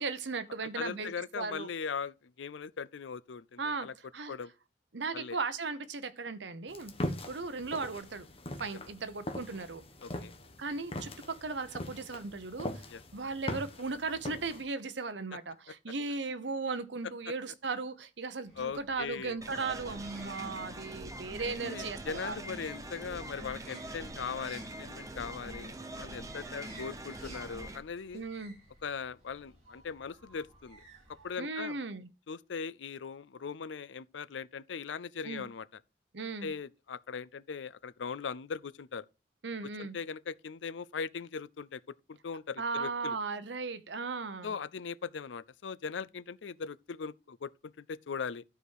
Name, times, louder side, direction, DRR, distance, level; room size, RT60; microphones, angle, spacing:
voice 1, 0.0-1.7 3.6-3.9 4.1-4.3 4.9-6.9 7.3-8.3 8.6-9.8 10.6-11.1 11.4-12.9 13.1-22.4 28.1-28.5 31.4-32.1 35.2-35.5 36.1-36.5 39.4-40.0 42.6-44.5, right 4 dB, 75° right, 1.0 m, -37 dB
voice 2, 0.8-3.9 4.3-4.5 5.1-5.4 8.7-8.8 10.0-10.3 12.9-13.0 18.6-19.4 21.6-28.2 28.8-30.8 31.2-31.8 32.3-35.7 36.4-39.0 39.8-43.2 44.4-48.4, left 6 dB, 85° left, 0.5 m, -40 dB
sound 1, 6.7-14.6, left 1 dB, 30° left, 1.2 m, -41 dB
sound 2, 18.5-31.3, right 1 dB, 35° right, 4.3 m, -57 dB
sound 3, 19.4-27.8, right 1 dB, 20° right, 0.9 m, -43 dB
12.5 x 5.0 x 4.7 m
head